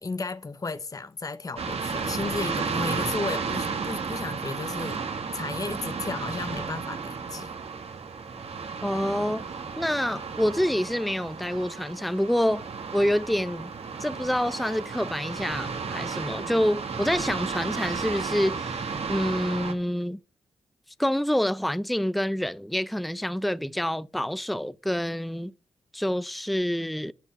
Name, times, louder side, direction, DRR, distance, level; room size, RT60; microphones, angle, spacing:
voice 1, 0.0-5.0 5.3-7.5, left 3 dB, 30° left, 0.8 m, -34 dB
sound 1, 1.6-19.7, right 5 dB, 60° right, 1.9 m, -33 dB
voice 2, 8.8-9.4 9.8-12.6 12.9-13.7 14.0-20.2 21.0-25.5 25.9-27.1, equal, ahead, 0.6 m, -27 dB
12.5 x 4.5 x 8.0 m
supercardioid pair, 40°, 12 cm